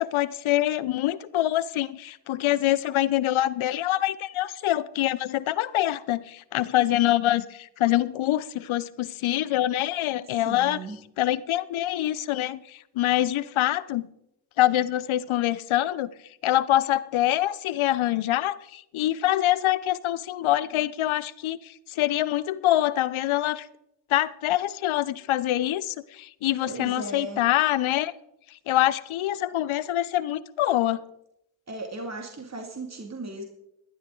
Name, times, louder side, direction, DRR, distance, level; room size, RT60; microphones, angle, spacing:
voice 1, 0.0-10.8 11.2-14.1 14.6-16.1 16.4-23.7 24.1-28.1 28.7-31.0, left 14 dB, 70° left, 0.8 m, -25 dB
voice 2, 10.3-11.0 26.7-27.5 31.7-33.4, right 2 dB, 30° right, 2.5 m, -36 dB
15.5 x 12.0 x 3.8 m
supercardioid pair, 50°, 49 cm